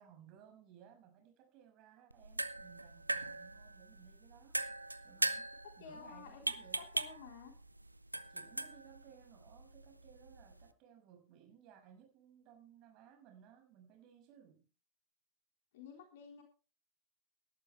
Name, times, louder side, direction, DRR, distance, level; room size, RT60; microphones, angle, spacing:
voice 1, 0.0-4.6 5.0-5.5 5.8-6.9 8.3-14.7, right 9 dB, 40° right, 6.2 m, -60 dB
sound 1, 2.1-10.7, right 2 dB, 85° right, 0.8 m, -41 dB
voice 2, 5.8-6.5 6.9-7.5 15.7-16.4, left 6 dB, 55° left, 3.8 m, -52 dB
18.0 x 12.5 x 3.4 m
figure-of-eight pair, 90°, 0 cm